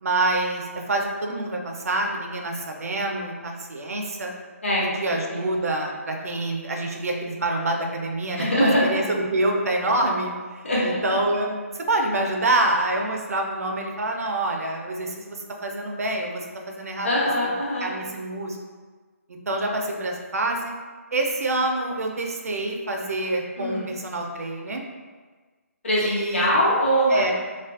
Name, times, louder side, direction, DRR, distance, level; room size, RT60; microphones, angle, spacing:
voice 1, 0.0-4.3 4.8-16.4 16.7-17.1 17.8-18.6 19.5-20.8 21.1-24.8 26.0-26.5 27.1-27.3, right 2 dB, 75° right, 1 dB, 0.4 m, -26 dB
voice 2, 8.4-9.0 10.6-11.0 17.0-17.9 23.6-23.9 25.8-27.2, equal, 55° left, -7 dB, 0.9 m, -22 dB
2.4 x 2.2 x 2.3 m, 1.4 s
hypercardioid pair, 180°, 8 cm